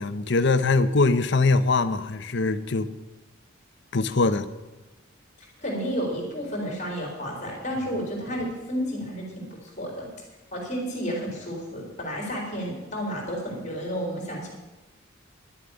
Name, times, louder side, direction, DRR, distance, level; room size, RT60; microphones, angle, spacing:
voice 1, 0.0-2.9 3.9-4.5, left 3 dB, 55° left, 11 dB, 0.7 m, -22 dB
voice 2, 5.6-9.5 9.8-10.1 10.5-14.5, equal, 35° left, -1 dB, 3.6 m, -31 dB
11.0 x 7.4 x 9.6 m, 1.1 s
head